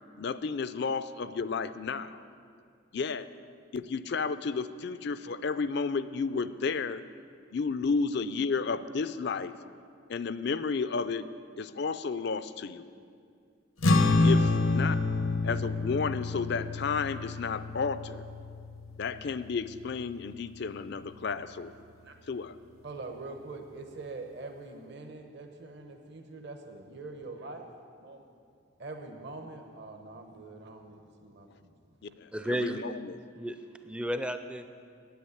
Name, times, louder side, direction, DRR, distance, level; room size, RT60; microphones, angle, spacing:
voice 1, 0.2-2.2 2.9-3.3 3.7-7.0 7.5-9.6 10.1-11.3 11.6-12.9 14.2-15.0 15.4-18.2 19.0-21.7 22.3-22.5 32.2-33.2, left 5 dB, 55° left, 14 dB, 0.4 m, -32 dB
sound 1, 13.8-20.5, left 2 dB, 80° left, 0.8 m, -28 dB
voice 2, 22.8-27.7 28.0-28.2 28.8-31.7, right 3 dB, 55° right, 4 dB, 0.9 m, -44 dB
voice 3, 32.3-32.9 33.4-34.7, equal, 5° right, 9 dB, 0.4 m, -33 dB
9.3 x 8.7 x 9.7 m, 2.3 s
head